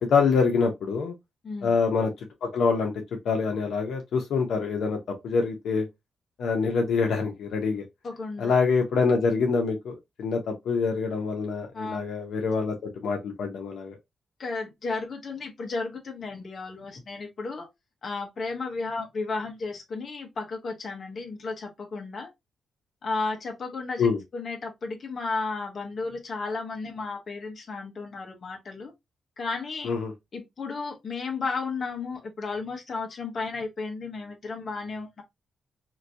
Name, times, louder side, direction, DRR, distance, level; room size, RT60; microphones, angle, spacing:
voice 1, 0.1-1.1 1.6-2.1 2.4-2.9 3.2-5.9 6.4-7.8 8.4-14.0 24.0-24.2 29.8-30.1, left 5 dB, 80° left, 0.8 m, -25 dB
voice 2, 1.4-1.8 8.0-8.5 11.7-12.0 14.4-17.7 18.0-22.3 23.0-24.1 24.3-28.9 29.4-29.9 30.3-35.2, left 3 dB, 50° left, 1.0 m, -33 dB
2.9 x 2.6 x 2.5 m
cardioid pair, 110°, 0 cm